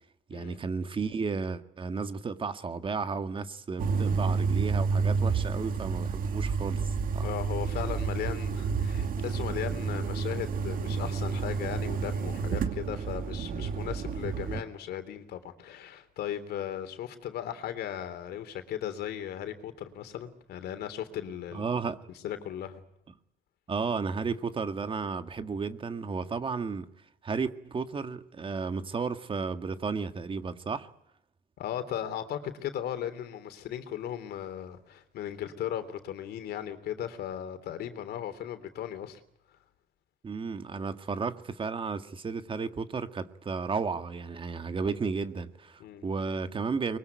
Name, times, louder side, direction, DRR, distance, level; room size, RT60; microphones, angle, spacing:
voice 1, 0.3-6.8 7.1-7.3 21.5-22.0 23.7-26.9 27.2-30.9 40.2-47.0, right 5 dB, 30° right, 1.8 m, -33 dB
sound 1, 3.8-14.6, right 5 dB, 55° right, 2.5 m, -30 dB
voice 2, 7.2-21.7 22.2-22.8 31.6-39.2 45.8-46.0, left 10 dB, 70° left, 3.3 m, -37 dB
24.0 x 23.0 x 9.5 m
cardioid pair, 110°, 17 cm